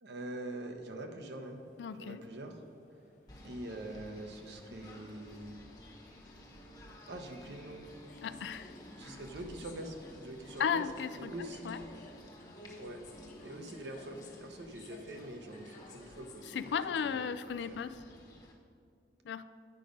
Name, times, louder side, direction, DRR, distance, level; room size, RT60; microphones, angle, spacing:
voice 1, 0.0-1.6 2.0-2.6 3.4-5.5 7.1-7.9 9.0-10.8 11.1-11.9 12.8-13.0 13.4-17.2 17.7-17.8, right 1 dB, 80° right, 5 dB, 0.9 m, -44 dB
sound 1, 1.4-17.0, left 2 dB, 45° left, 1.0 m, -55 dB
voice 2, 1.8-2.2 8.2-8.7 9.0-9.2 10.6-11.3 11.6-11.8 16.5-18.0 19.2-19.4, left 7 dB, 85° left, 14 dB, 0.3 m, -35 dB
Singing / Bird, 3.3-18.5, equal, 20° left, 1.0 m, -54 dB
9.1 x 5.2 x 5.2 m, 2.4 s
head